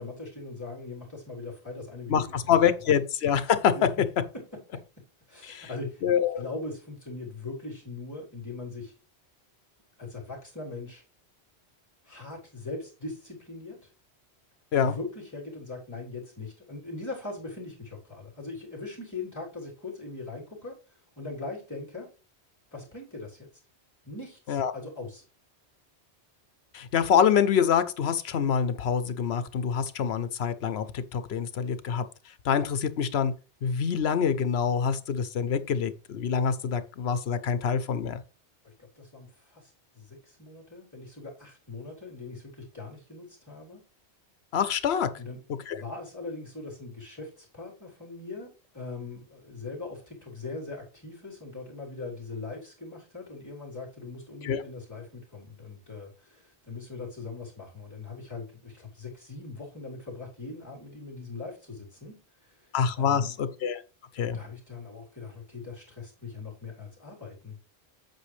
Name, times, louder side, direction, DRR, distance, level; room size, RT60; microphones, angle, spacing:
voice 1, 0.0-2.5 3.7-3.9 4.3-4.8 5.3-6.0 6.3-8.9 10.0-11.0 12.0-13.9 14.7-20.8 21.2-22.1 22.7-23.5 24.0-25.2 38.6-43.8 45.2-45.4 45.7-63.4 64.2-67.6, left 3 dB, 15° left, 3.3 m, -40 dB
voice 2, 2.1-3.7 5.5-5.7 6.0-6.4 14.7-15.0 24.5-24.7 26.7-32.1 32.4-33.3 33.6-38.2 44.5-45.1 45.7-45.8 54.4-54.6 62.7-63.8 64.2-64.4, left 7 dB, 70° left, 1.0 m, -26 dB
8.1 x 6.3 x 3.2 m
omnidirectional pair, 1.1 m